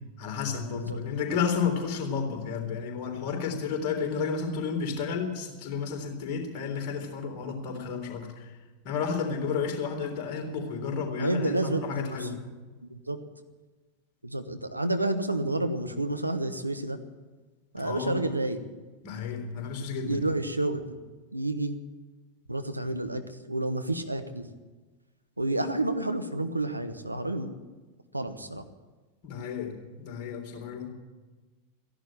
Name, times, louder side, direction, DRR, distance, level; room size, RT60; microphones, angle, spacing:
voice 1, 0.2-8.5 8.8-12.4 17.8-18.1 19.0-20.2 29.2-30.9, left 6 dB, 40° left, 2 dB, 3.6 m, -32 dB
voice 2, 11.2-12.3 12.8-13.2 14.2-17.0 17.7-18.6 20.1-21.0 21.3-21.8 22.5-24.5 25.4-27.6 28.1-28.6, right 2 dB, 85° right, 9 dB, 1.1 m, -30 dB
15.0 x 11.0 x 8.8 m, 1.3 s
figure-of-eight pair, 90°, 0 cm